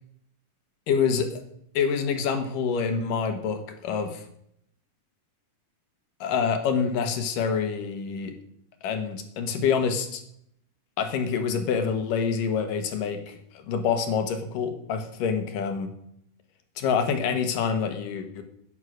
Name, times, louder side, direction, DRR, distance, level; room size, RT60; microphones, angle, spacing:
voice 1, 0.9-1.4 1.7-4.2 6.2-8.3 8.8-10.2 11.0-15.9 16.8-18.4, left 6 dB, 80° left, 6 dB, 3.1 m, -26 dB
11.0 x 9.6 x 6.4 m, 0.71 s
omnidirectional pair, 3.8 m